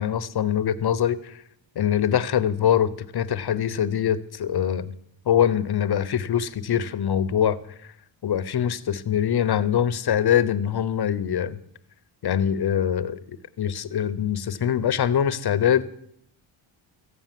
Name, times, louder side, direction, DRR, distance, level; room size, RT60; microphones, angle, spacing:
voice 1, 0.0-1.4 1.8-4.9 5.3-7.6 8.2-11.6 12.2-13.2 13.6-15.8, left 9 dB, 50° left, 14 dB, 0.8 m, -23 dB
14.0 x 9.1 x 7.5 m, 0.73 s
cardioid pair, 110°, 50 cm